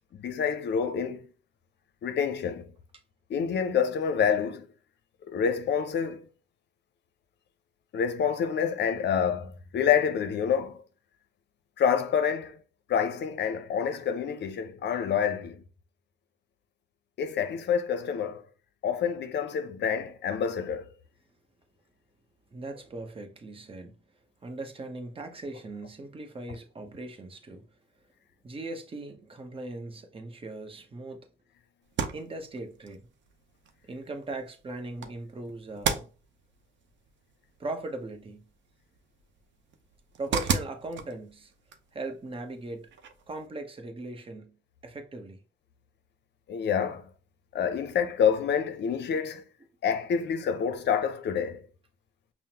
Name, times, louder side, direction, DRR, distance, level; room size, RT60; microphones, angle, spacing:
voice 1, 0.2-1.3 2.0-2.7 3.3-4.7 5.2-6.2 7.9-10.8 11.8-12.6 12.9-15.6 17.2-18.4 18.8-20.8 46.5-47.0 47.5-49.4 49.8-51.6, left 7 dB, 60° left, 0.6 m, -27 dB
voice 2, 22.5-24.0 24.4-27.7 28.4-31.3 32.1-33.1 33.9-36.1 37.6-38.5 40.2-41.5 41.9-42.9 43.3-44.6 44.8-45.4, right 2 dB, 25° right, 0.8 m, -39 dB
sound 1, 31.8-43.5, right 6 dB, 65° right, 0.7 m, -37 dB
5.5 x 2.1 x 2.8 m
cardioid pair, 90°, 20 cm